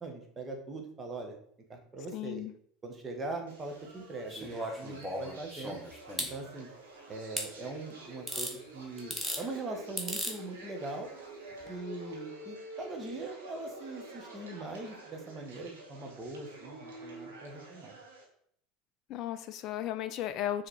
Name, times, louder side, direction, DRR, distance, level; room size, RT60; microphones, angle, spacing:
voice 1, 0.0-1.4 1.7-2.4 2.8-5.8 6.2-6.7 7.1-11.1 11.7-18.0, right 2 dB, 25° right, 3 dB, 1.5 m, -41 dB
voice 2, 2.1-2.5 19.1-20.7, left 11 dB, 45° left, 11 dB, 0.4 m, -35 dB
Party with Two People, 3.5-18.2, right 2 dB, 70° right, 1.6 m, -48 dB
sound 1, 4.3-6.3 7.4-7.5 8.3-8.5 9.0-9.4 10.0-10.3 11.6-11.7, equal, ahead, 1.3 m, -36 dB
6.6 x 3.5 x 4.4 m, 0.65 s
figure-of-eight pair, 70°, 0 cm